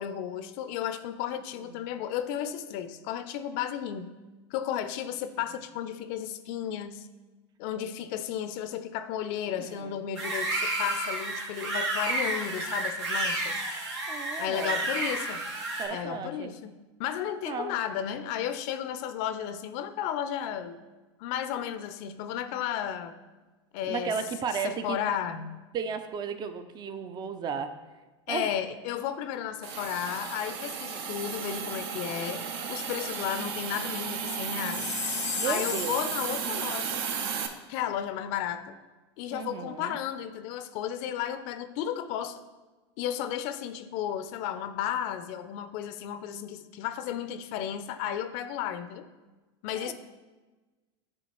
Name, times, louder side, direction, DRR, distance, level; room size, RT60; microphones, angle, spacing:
voice 1, 0.0-4.1 4.5-7.1 7.6-13.6 14.4-15.5 15.9-20.8 21.2-23.2 23.7-24.1 24.6-25.6 28.3-34.9 35.4-37.0 37.7-38.7 39.2-42.4 43.0-49.1 49.6-49.9, left 10 dB, 55° left, 10 dB, 0.5 m, -33 dB
voice 2, 9.6-9.9 14.1-14.9 15.8-16.5 17.5-17.8 23.9-25.0 25.7-27.8 28.3-28.5 35.4-36.0 39.3-40.0 49.7-49.9, right 6 dB, 30° right, 9 dB, 0.5 m, -34 dB
sound 1, 10.1-15.8, right 2 dB, 85° right, 1.8 m, -31 dB
Hiss, 29.6-37.5, right 7 dB, 65° right, 0.7 m, -34 dB
Chime, 34.5-36.5, left 7 dB, 90° left, 0.8 m, -35 dB
9.9 x 3.5 x 3.1 m, 1.2 s
hypercardioid pair, 100°, 15 cm